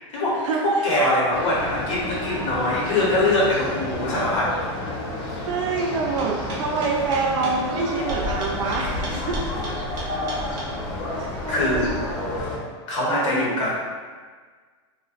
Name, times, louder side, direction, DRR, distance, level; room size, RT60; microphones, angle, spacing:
voice 1, 0.0-0.4 0.6-4.5 4.8-4.9 11.5-11.9 12.9-13.7, left 1 dB, 90° left, -6 dB, 0.9 m, -22 dB
sound 1, 1.3-12.6, left 2 dB, 30° left, 0.4 m, -30 dB
voice 2, 5.4-9.4 11.1-11.3 11.6-11.8 13.1-13.5, right 4 dB, 80° right, 0 dB, 0.5 m, -26 dB
sound 2, 6.2-10.7, right 1 dB, 25° right, 0.5 m, -35 dB
2.6 x 2.1 x 2.3 m, 1.5 s
supercardioid pair, 170°, 16 cm